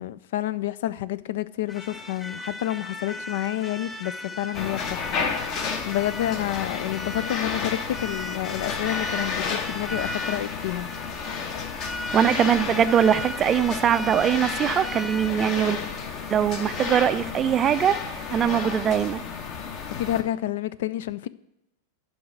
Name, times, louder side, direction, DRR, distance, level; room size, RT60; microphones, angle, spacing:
voice 1, 0.0-5.3 5.9-10.9 20.0-21.3, left 14 dB, 55° left, 0.4 m, -29 dB
sound 1, 1.7-19.2, left 1 dB, 15° left, 0.6 m, -38 dB
sound 2, 4.2-15.2, equal, 75° left, 2.3 m, -51 dB
sound 3, 4.5-20.2, left 5 dB, 40° left, 1.1 m, -32 dB
voice 2, 12.1-15.8 16.3-18.0 18.3-19.2, right 9 dB, 25° right, 0.4 m, -22 dB
11.5 x 4.7 x 7.8 m
figure-of-eight pair, 90°, 0 cm